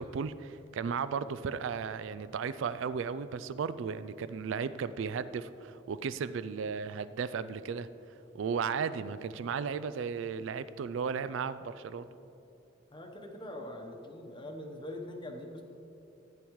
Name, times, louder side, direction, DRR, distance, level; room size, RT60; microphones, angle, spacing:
voice 1, 0.0-7.9 8.3-12.0, right 6 dB, 65° right, 13 dB, 0.3 m, -35 dB
voice 2, 12.9-15.6, left 1 dB, 25° left, 3 dB, 1.0 m, -43 dB
15.0 x 10.0 x 3.1 m, 2.8 s
head